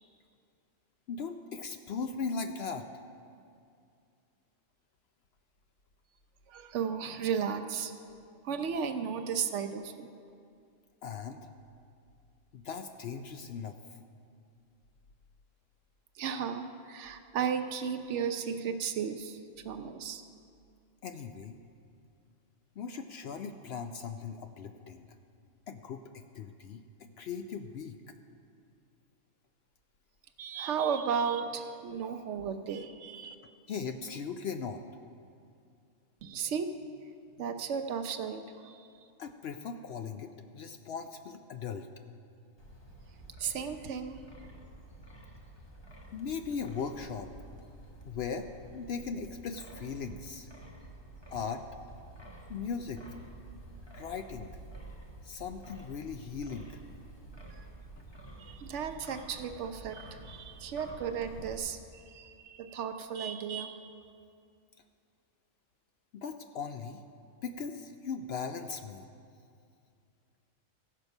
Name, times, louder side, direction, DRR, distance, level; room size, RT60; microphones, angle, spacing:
voice 1, 1.1-2.9 11.0-11.5 12.5-13.7 21.0-21.6 22.8-25.1 25.7-28.0 33.7-34.8 39.2-41.9 46.1-47.3 48.0-48.5 48.7-50.5 51.3-51.6 52.5-53.0 53.9-54.5 55.2-56.8 66.1-67.0 67.4-69.0, left 5 dB, 65° left, 7 dB, 0.7 m, -38 dB
voice 2, 6.5-7.9 8.4-10.1 16.2-19.4 19.6-20.2 30.4-33.3 36.2-36.7 37.4-38.9 43.4-44.2 57.5-57.7 58.4-63.9, right 7 dB, 70° right, 8 dB, 0.9 m, -34 dB
Wind, 42.6-61.6, right 1 dB, 20° left, 0.9 m, -50 dB
16.0 x 6.5 x 5.3 m, 2.4 s
omnidirectional pair, 1.4 m